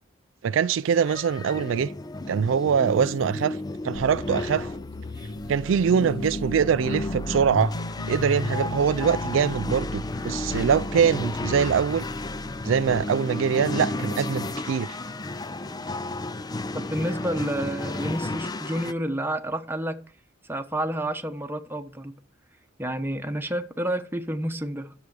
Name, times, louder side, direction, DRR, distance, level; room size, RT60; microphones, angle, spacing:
voice 1, 0.4-1.9 2.3-3.6 3.8-4.7 5.5-7.7 8.1-12.0 12.6-14.9, right 7 dB, 70° right, 0.4 m, -23 dB
sound 1, 0.9-18.9, left 2 dB, 20° left, 0.4 m, -33 dB
sound 2, 3.9-13.0, left 1 dB, 90° left, 1.2 m, -36 dB
voice 2, 16.7-20.0 20.5-22.2 22.8-24.9, right 1 dB, 10° right, 1.0 m, -29 dB
11.5 x 7.0 x 4.8 m
head